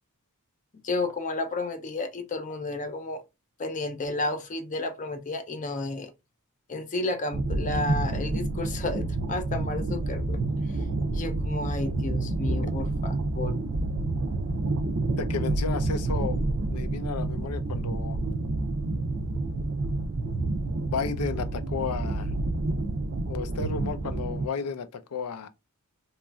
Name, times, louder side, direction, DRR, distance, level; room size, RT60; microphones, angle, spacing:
voice 1, 0.8-3.2 3.6-6.1 6.7-10.4 11.1-13.6, left 2 dB, 35° left, 0.5 m, -32 dB
sound 1, 7.3-24.5, right 2 dB, 60° right, 0.4 m, -29 dB
voice 2, 15.2-16.4 16.7-18.2 20.8-22.3 23.3-25.5, left 5 dB, 85° left, 0.5 m, -33 dB
3.0 x 2.4 x 2.3 m
head